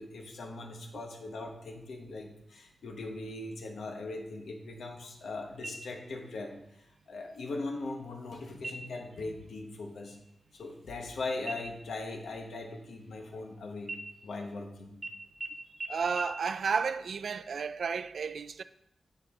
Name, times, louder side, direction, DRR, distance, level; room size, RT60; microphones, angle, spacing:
voice 1, 0.0-10.2 10.5-13.9 14.2-15.0, left 2 dB, 85° left, 1.2 m, -40 dB
sound 1, 5.6-6.3 6.7-6.8 7.3-7.9 8.6-9.1 9.5-9.7 10.0-11.1 11.5-13.5 13.8-14.6 15.0-15.1 15.4-15.5 15.8-15.9 16.2-16.3, right 2 dB, 40° right, 0.7 m, -43 dB
voice 2, 15.9-18.6, right 5 dB, 65° right, 0.3 m, -32 dB
10.0 x 4.6 x 3.7 m
wide cardioid pair, 130°, 0 cm